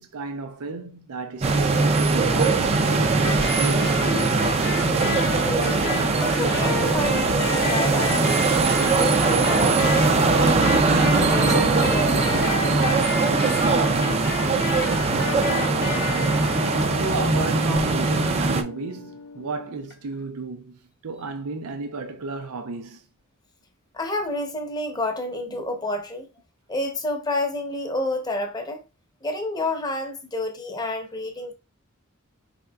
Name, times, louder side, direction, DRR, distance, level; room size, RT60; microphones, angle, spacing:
voice 1, 0.0-4.4 13.5-13.6 14.4-14.6 14.9-15.3 16.9-23.1, right 3 dB, 85° right, 0.5 m, -34 dB
sound 1, 1.4-18.6, right 3 dB, 30° right, 0.4 m, -21 dB
sound 2, 3.2-20.1, left 4 dB, 50° left, 0.8 m, -32 dB
voice 2, 5.4-8.5 8.9-12.5 13.7-14.1 23.9-26.3 26.7-28.8 29.2-31.5, left 2 dB, 20° left, 0.7 m, -30 dB
4.6 x 3.6 x 2.3 m
head